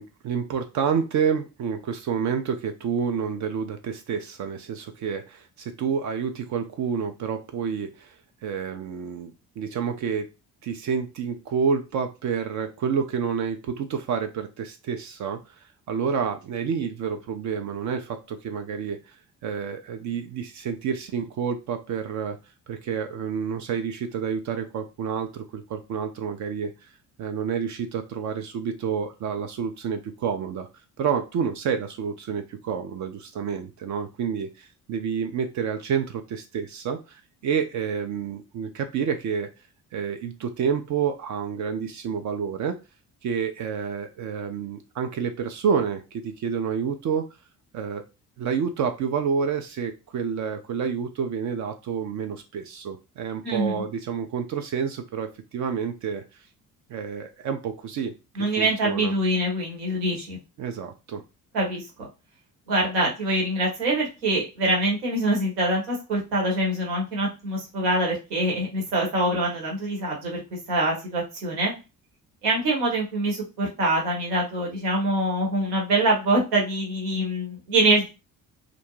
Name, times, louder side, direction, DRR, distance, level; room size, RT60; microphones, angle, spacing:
voice 1, 0.0-10.3 10.6-19.2 19.4-22.4 22.7-30.7 31.0-39.5 39.9-42.8 43.2-47.3 47.7-48.0 48.4-56.5 56.9-58.1 58.6-59.1 60.6-61.2, right 6 dB, 40° right, 6 dB, 0.4 m, -29 dB
voice 2, 53.4-53.8 58.4-60.4 61.5-61.8 62.7-70.4 70.7-71.7 72.4-78.1, right 1 dB, 75° right, -2 dB, 1.1 m, -24 dB
2.5 x 2.1 x 3.0 m, 0.29 s
figure-of-eight pair, 45°, 47 cm